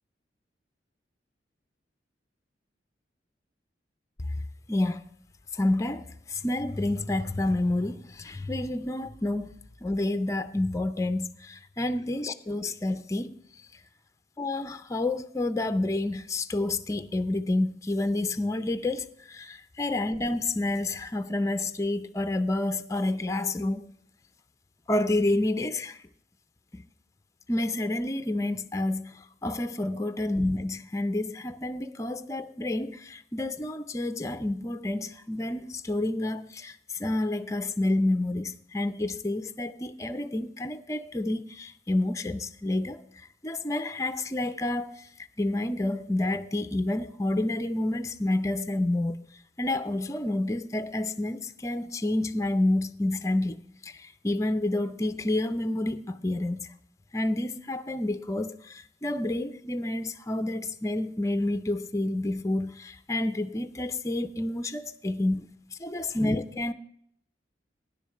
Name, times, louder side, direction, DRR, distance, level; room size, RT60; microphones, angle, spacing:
voice 1, 4.7-5.1 5.5-9.5 9.8-13.4 14.4-23.9 24.9-26.0 26.7-26.8 27.5-43.0 43.4-45.0 45.4-49.2 49.6-53.6 53.8-56.7 57.1-65.5 65.8-66.7, left 2 dB, 15° left, 0.5 m, -29 dB
10.0 x 6.8 x 6.4 m
head